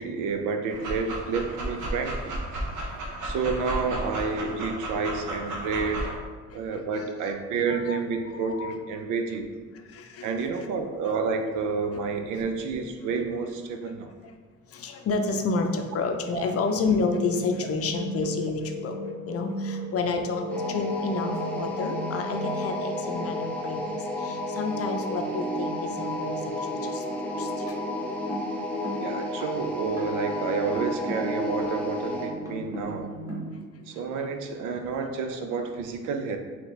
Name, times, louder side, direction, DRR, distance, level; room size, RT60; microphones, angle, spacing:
voice 1, 0.0-2.4 2.8-2.9 3.2-6.1 6.5-9.5 10.2-14.1 16.3-16.5 29.0-33.1 33.9-36.4, right 4 dB, 90° right, 6 dB, 0.5 m, -30 dB
Dog, 0.7-6.1, right 1 dB, 70° right, 0.8 m, -33 dB
voice 2, 6.5-7.3 7.7-8.0 8.3-8.7 9.8-10.7 14.7-27.0 27.4-27.8 33.5-33.8, left 4 dB, 50° left, 5 dB, 0.5 m, -30 dB
sound 1, 16.7-33.6, right 1 dB, 10° right, 1.1 m, -35 dB
sound 2, 20.5-32.4, left 1 dB, 5° left, 0.7 m, -33 dB
4.1 x 2.9 x 3.1 m, 1.5 s
cardioid pair, 90°, 30 cm